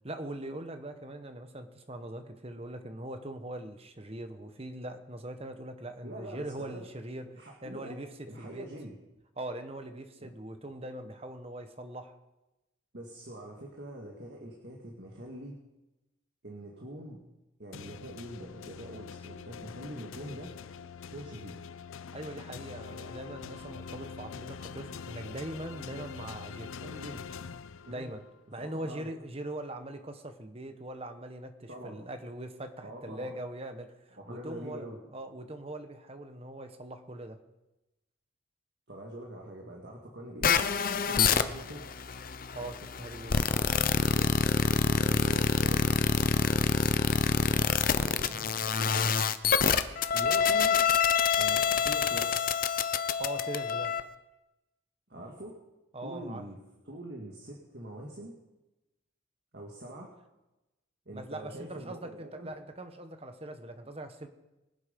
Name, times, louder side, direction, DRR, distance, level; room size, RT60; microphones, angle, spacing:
voice 1, 0.0-8.7 9.4-12.1 22.1-26.7 27.9-28.2 28.5-37.4 42.5-43.3 53.2-53.9 55.9-56.5 61.1-64.3, right 1 dB, 30° right, 7 dB, 1.2 m, -41 dB
voice 2, 6.0-6.9 7.3-8.0 8.3-9.0 10.2-10.3 12.9-15.6 16.4-17.2 17.6-20.5 21.1-21.6 26.8-27.2 27.9-28.1 28.6-29.1 31.7-32.0 32.8-33.3 34.2-35.0 38.9-41.9 44.1-46.6 47.3-48.5 50.1-50.8 51.4-52.3 55.1-55.6 56.0-56.6 56.8-58.3 59.5-60.1 61.1-62.5, right 1 dB, 55° right, -1 dB, 2.1 m, -44 dB
sound 1, 17.7-28.3, left 6 dB, 90° left, 0.5 m, -44 dB
sound 2, 40.4-54.0, left 5 dB, 45° left, 0.6 m, -26 dB
24.0 x 8.2 x 5.3 m, 0.99 s
head